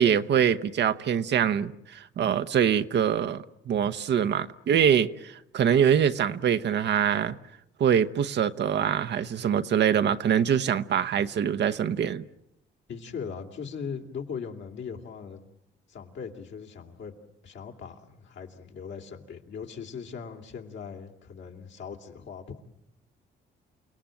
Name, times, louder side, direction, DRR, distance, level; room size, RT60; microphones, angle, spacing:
voice 1, 0.0-7.4 7.8-12.2, right 8 dB, 60° right, 0.9 m, -24 dB
voice 2, 12.9-15.4 15.9-17.1 17.4-22.6, left 6 dB, 65° left, 2.9 m, -39 dB
29.0 x 18.0 x 9.0 m
cardioid pair, 90°, 20 cm